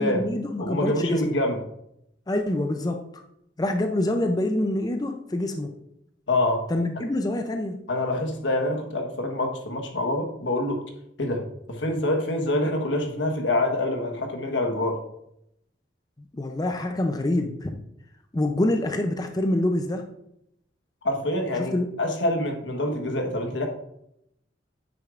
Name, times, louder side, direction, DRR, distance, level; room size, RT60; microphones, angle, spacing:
voice 1, 0.0-1.4 2.3-3.0 3.6-5.7 6.7-7.8 16.3-17.8 18.3-20.1 21.6-21.9, left 1 dB, 20° left, 5 dB, 0.5 m, -26 dB
voice 2, 0.6-1.6 6.3-6.6 7.9-10.8 11.2-15.0 21.0-23.7, left 1 dB, 85° left, 3 dB, 1.2 m, -26 dB
8.6 x 6.5 x 2.5 m, 0.78 s
head